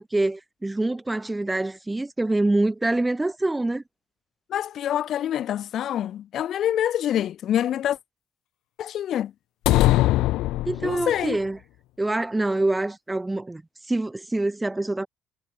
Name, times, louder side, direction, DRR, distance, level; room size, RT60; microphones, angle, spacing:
voice 1, 0.0-3.8 10.7-11.6 12.0-13.6 13.9-15.1, right 2 dB, 15° right, 6.3 m, -25 dB
voice 2, 4.5-8.0 8.8-9.3 10.8-11.4, left 11 dB, 60° left, 7.3 m, -26 dB
sound 1, 9.7-11.3, left 17 dB, 80° left, 5.0 m, -21 dB
cardioid pair, 85°, 0 cm